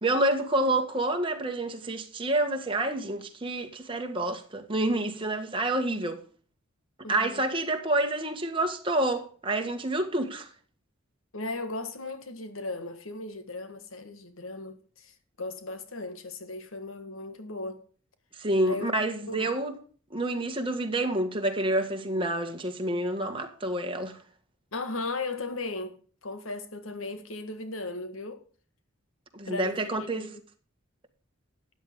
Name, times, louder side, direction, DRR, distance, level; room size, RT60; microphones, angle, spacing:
voice 1, 0.0-6.2 7.1-10.5 18.4-19.7 20.1-24.2 29.3-30.3, right 1 dB, 25° right, 1.8 m, -28 dB
voice 2, 7.0-7.4 11.3-17.9 18.6-18.9 19.3-19.5 24.7-28.4 29.4-30.4, left 2 dB, 80° left, 1.6 m, -37 dB
13.5 x 9.6 x 3.7 m
head